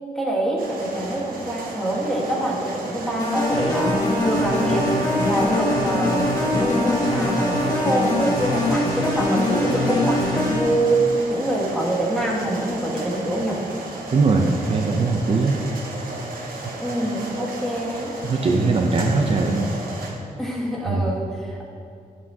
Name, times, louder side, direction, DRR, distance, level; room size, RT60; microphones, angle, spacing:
voice 1, 0.1-4.0 4.2-5.0 5.2-6.3 6.5-13.6 16.8-18.1 20.4-21.6, right 1 dB, ahead, -3 dB, 1.4 m, -25 dB
sound 1, 0.6-20.1, right 2 dB, 75° right, 1.2 m, -35 dB
sound 2, 3.2-10.8, left 1 dB, 25° left, 1.9 m, -22 dB
voice 2, 14.1-15.6 18.2-19.7 20.9-21.0, right 3 dB, 40° right, 2 dB, 0.5 m, -20 dB
11.0 x 7.4 x 2.8 m, 2.4 s
wide cardioid pair, 150°, 15 cm